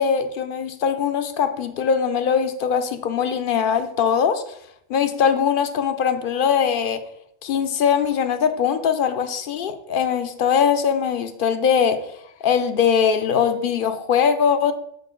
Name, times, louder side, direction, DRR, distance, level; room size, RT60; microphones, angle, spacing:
voice 1, 0.0-4.4 4.9-7.0 7.4-12.0 12.4-14.7, left 7 dB, 60° left, 0.7 m, -21 dB
6.8 x 4.9 x 3.7 m
omnidirectional pair, 1.1 m